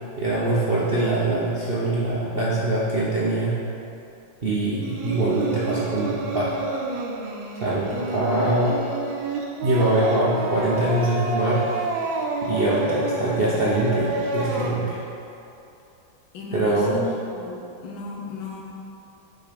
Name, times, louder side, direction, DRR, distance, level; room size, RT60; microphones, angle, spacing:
voice 1, 0.2-3.6 4.4-6.5 7.6-8.7 9.6-11.6 12.4-15.0 16.5-17.0, right 1 dB, 50° right, -8 dB, 0.7 m, -23 dB
Singing, 4.8-14.7, right 3 dB, 85° right, 1.5 m, -29 dB
voice 2, 12.8-13.6 16.3-18.6, left 3 dB, 85° left, -1 dB, 1.7 m, -35 dB
5.8 x 5.0 x 5.3 m, 2.8 s
omnidirectional pair, 2.1 m